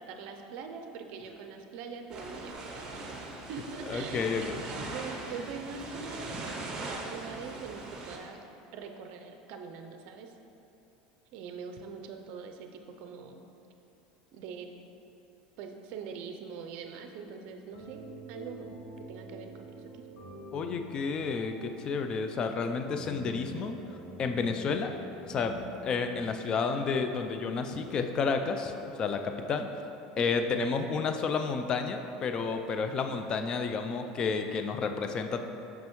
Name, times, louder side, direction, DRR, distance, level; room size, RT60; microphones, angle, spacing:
voice 1, 0.0-3.0 3.5-8.4 8.7-10.3 11.3-13.5 14.3-14.7 15.6-20.2 30.2-30.5, right 5 dB, 60° right, 4 dB, 0.5 m, -43 dB
sound 1, 2.1-8.2, right 2 dB, 35° right, 0.8 m, -40 dB
voice 2, 3.9-4.6 20.5-24.9 25.3-28.7 29.0-29.7 30.2-35.4, left 5 dB, 35° left, 6 dB, 0.4 m, -31 dB
sound 2, 16.8-26.2, equal, 65° left, 1.2 m, -47 dB
6.0 x 5.4 x 3.0 m, 2.9 s
supercardioid pair, 125°, 2 cm